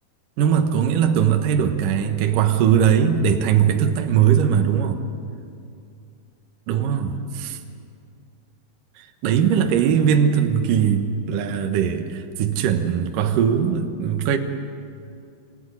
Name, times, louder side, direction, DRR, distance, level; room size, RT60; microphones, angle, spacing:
voice 1, 0.4-5.0 6.7-7.6 9.0-14.4, right 8 dB, 65° right, 5 dB, 2.5 m, -20 dB
27.0 x 16.5 x 9.9 m, 2.4 s
omnidirectional pair, 4.8 m